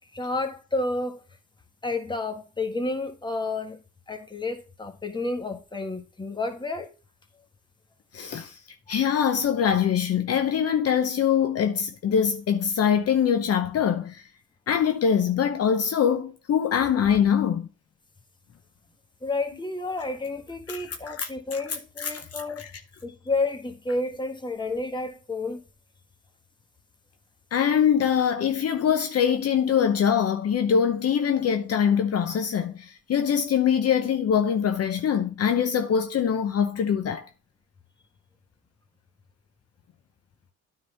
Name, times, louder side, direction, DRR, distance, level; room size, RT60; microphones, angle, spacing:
voice 1, 0.1-1.2 1.8-3.8 4.1-6.9 8.9-9.0 19.2-22.7 23.0-25.6, left 2 dB, 15° left, 1.5 m, -30 dB
voice 2, 8.1-8.6 8.9-14.2 14.7-17.7 20.7-21.6 22.0-22.7 27.5-37.3, left 8 dB, 55° left, 0.8 m, -23 dB
9.6 x 4.0 x 5.5 m
cardioid pair, 90°, 30 cm